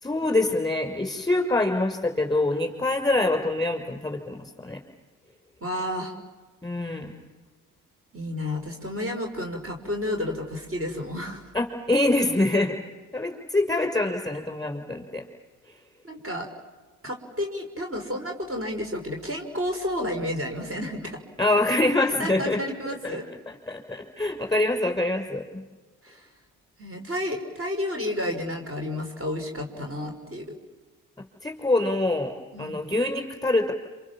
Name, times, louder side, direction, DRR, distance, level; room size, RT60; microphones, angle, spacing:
voice 1, 0.0-4.4 4.6-4.8 6.6-7.1 11.5-12.8 13.1-15.2 21.4-22.6 22.9-23.2 23.5-25.6 31.4-32.3 32.6-33.7, left 2 dB, 10° left, 4 dB, 5.9 m, -25 dB
voice 2, 5.6-6.1 8.1-11.4 16.0-16.5 17.0-21.2 22.2-23.2 26.0-26.3 26.8-30.5 32.5-32.8, left 1 dB, 35° right, 3 dB, 5.8 m, -31 dB
28.0 x 26.5 x 7.4 m, 1.3 s
supercardioid pair, 70°, 39 cm